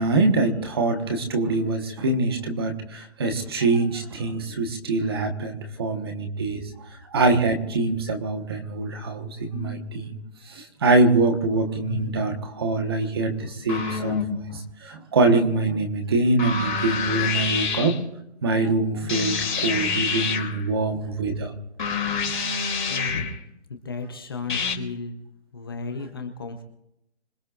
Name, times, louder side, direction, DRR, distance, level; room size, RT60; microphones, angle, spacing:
voice 1, 0.0-6.6 7.1-10.2 10.5-14.2 14.5-18.0 18.4-21.5, right 3 dB, 20° right, 5 dB, 1.4 m, -24 dB
sound 1, 9.5-9.8 11.0-11.1 11.5-12.4 13.7-14.6 16.4-18.0 19.1-20.7 21.8-23.4 24.5-24.8, left 5 dB, 45° left, 3.2 m, -27 dB
voice 2, 22.9-23.3 23.7-25.2 25.5-26.6, left 4 dB, 20° left, 4 dB, 0.9 m, -34 dB
26.0 x 20.0 x 2.6 m, 0.81 s
hypercardioid pair, 175°, 33 cm